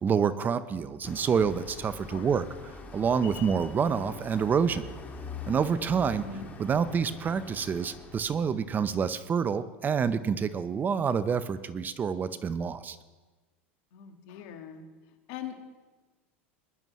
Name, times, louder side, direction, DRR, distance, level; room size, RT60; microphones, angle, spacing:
voice 1, 0.0-4.9 5.5-6.2 6.6-13.0, right 6 dB, 25° right, 14 dB, 0.6 m, -28 dB
sound 1, 1.0-9.4, left 4 dB, 25° left, 2.1 m, -44 dB
voice 2, 6.2-6.5 13.9-14.8 15.3-15.7, left 8 dB, 65° left, 5 dB, 1.7 m, -41 dB
21.0 x 11.0 x 3.1 m, 1.3 s
hypercardioid pair, 100°, 7 cm